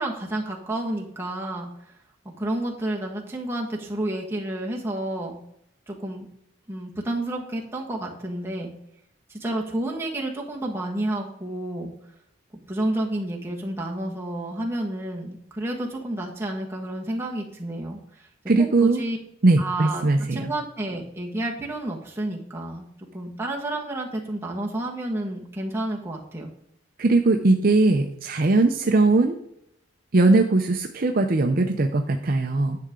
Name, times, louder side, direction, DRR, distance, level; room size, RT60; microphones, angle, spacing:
voice 1, 0.0-1.7 2.4-5.4 5.9-6.3 6.7-8.7 9.3-11.9 12.7-18.0 18.6-19.2 19.6-20.0 20.3-22.9 23.1-26.5, right 1 dB, 10° right, -2 dB, 1.5 m, -30 dB
voice 2, 18.5-19.0 19.4-20.5 27.0-29.4 30.1-32.8, right 2 dB, 45° right, 5 dB, 0.6 m, -20 dB
10.5 x 6.7 x 3.7 m, 0.76 s
head